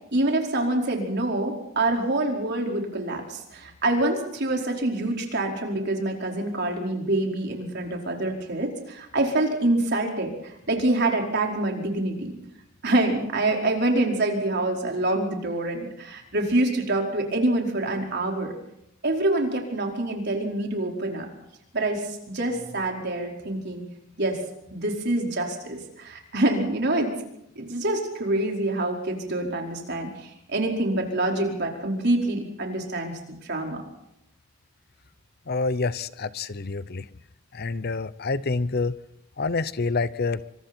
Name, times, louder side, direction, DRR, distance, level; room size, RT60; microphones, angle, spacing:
voice 1, 0.1-12.3 12.8-18.5 19.0-21.3 21.7-23.8 24.2-24.4 24.7-27.1 27.5-33.8, right 2 dB, 60° right, 1 dB, 4.9 m, -26 dB
voice 2, 35.5-37.1 37.5-39.0 39.4-40.4, left 3 dB, 55° left, 16 dB, 0.8 m, -27 dB
27.0 x 25.5 x 4.5 m, 0.82 s
head